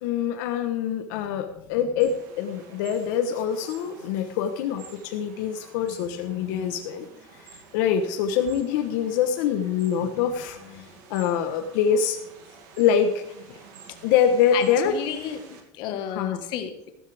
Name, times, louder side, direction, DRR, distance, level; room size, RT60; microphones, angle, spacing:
voice 1, 0.0-7.1 7.7-12.2 12.8-13.2 13.5-13.6 14.0-15.0 16.0-16.4, left 8 dB, 75° left, 6 dB, 1.0 m, -25 dB
sound 1, 2.0-15.6, right 5 dB, 70° right, 2.6 m, -49 dB
voice 2, 14.5-16.9, left 9 dB, 50° left, 7 dB, 1.5 m, -32 dB
14.5 x 13.0 x 3.5 m, 0.83 s
cardioid pair, 170°, 10 cm